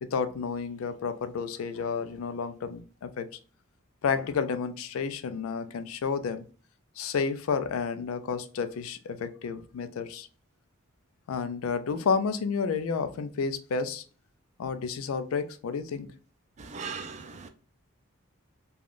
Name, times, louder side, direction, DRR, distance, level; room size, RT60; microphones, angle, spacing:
voice 1, 0.0-3.3 4.0-6.4 7.0-10.3 11.3-14.0 14.6-16.1, left 5 dB, 80° left, 0.4 m, -31 dB
voice 2, 16.6-17.5, right 5 dB, 35° right, 0.4 m, -38 dB
3.3 x 2.3 x 2.4 m
head